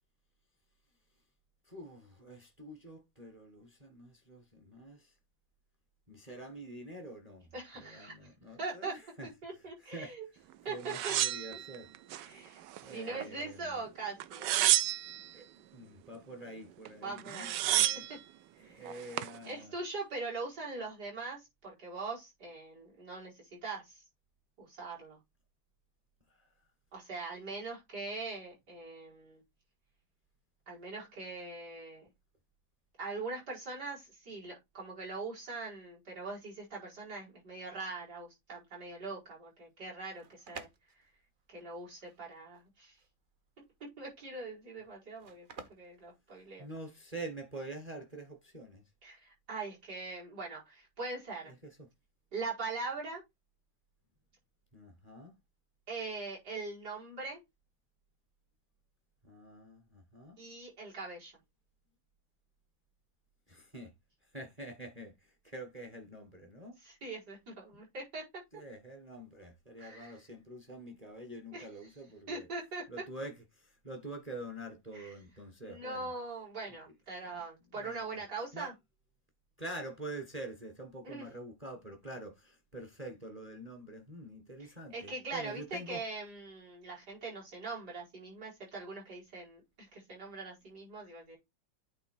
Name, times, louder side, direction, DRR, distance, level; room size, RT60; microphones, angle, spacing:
voice 1, 1.7-5.1 6.1-7.5 7.7-9.3 9.9-10.1 10.7-11.9 12.8-13.9 15.3-15.5 15.7-18.2 18.6-19.7 26.4-26.5 46.6-48.8 51.5-51.9 54.7-55.3 59.2-60.4 63.5-63.9 64.3-66.8 67.7-67.8 68.5-72.5 72.9-76.1 77.8-78.2 78.5-78.7 79.6-86.0, right 1 dB, 20° right, 1.3 m, -46 dB
voice 2, 7.5-8.2 8.6-8.9 9.4-10.3 10.7-11.2 11.5-11.6 12.2-14.7 17.0-18.2 18.6-18.8 19.4-24.0 24.6-25.2 26.9-29.4 30.7-32.0 33.0-40.7 41.5-43.0 43.6-46.7 49.0-51.5 52.3-53.2 55.9-57.4 60.4-61.3 66.8-68.6 69.8-70.1 71.5-71.7 72.3-72.9 74.9-75.1 75.6-78.7 81.0-81.3 84.6-91.4, right 3 dB, 55° right, 5.4 m, -42 dB
sound 1, 10.9-12.3 12.7-13.5 14.2-15.3 16.9-17.0 17.2-18.2 18.9-19.4, right 13 dB, 75° right, 1.2 m, -30 dB
sound 2, 40.1-47.0, right 4 dB, 40° right, 0.7 m, -53 dB
8.8 x 3.8 x 4.7 m
omnidirectional pair, 2.0 m